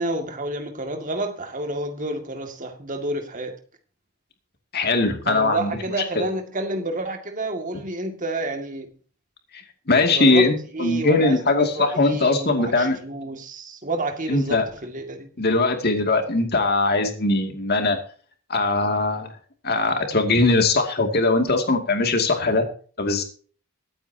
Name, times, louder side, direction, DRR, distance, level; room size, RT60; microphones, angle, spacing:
voice 1, 0.0-3.6 5.3-8.9 10.1-10.4 10.7-15.3, right 2 dB, 35° right, 2.2 m, -30 dB
voice 2, 4.7-6.3 9.9-13.0 14.3-14.6 15.4-18.0 18.5-19.3 19.6-22.6 23.0-23.2, left 3 dB, 45° left, 2.4 m, -20 dB
22.5 x 9.2 x 2.8 m
head